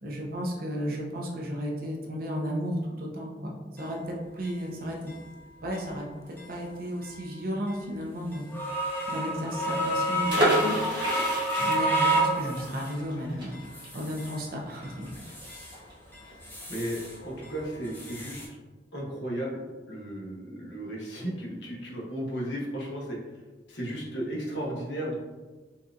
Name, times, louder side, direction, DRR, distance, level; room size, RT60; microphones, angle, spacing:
voice 1, 0.0-5.1 5.6-10.8 11.6-15.1, equal, 55° right, -1 dB, 0.6 m, -34 dB
sound 1, 3.8-3.9 4.4-4.5 5.1-5.2 5.7-5.9 6.4-6.5 7.0-7.2 7.7-7.8 8.3-13.1 13.5-14.4 14.8-15.8 16.1-17.2 17.4-18.5, right 1 dB, 10° left, 0.6 m, -30 dB
sound 2, 10.3-15.9 16.2-16.3 16.6-16.9, right 1 dB, 25° right, 1.0 m, -30 dB
voice 2, 16.7-18.4 18.9-19.6 19.9-23.2 23.7-25.2, right 1 dB, 75° left, -3 dB, 0.9 m, -34 dB
4.1 x 2.4 x 2.4 m, 1.3 s
head